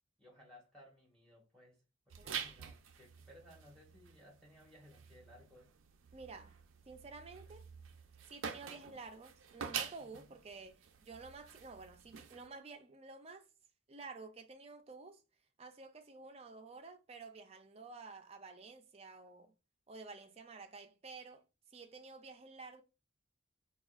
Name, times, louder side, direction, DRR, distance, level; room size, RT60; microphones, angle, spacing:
voice 1, 0.2-1.8 2.1-5.7 10.0-10.3, left 1 dB, 5° left, 1.0 m, -60 dB
sound 1, 2.1-12.5, right 7 dB, 85° right, 0.5 m, -47 dB
voice 2, 2.2-2.6 6.1-6.5 6.9-7.7 8.3-13.5 13.9-15.2 15.6-19.5 19.9-21.4 21.7-22.8, right 4 dB, 30° right, 0.5 m, -51 dB
4.5 x 2.3 x 2.4 m
head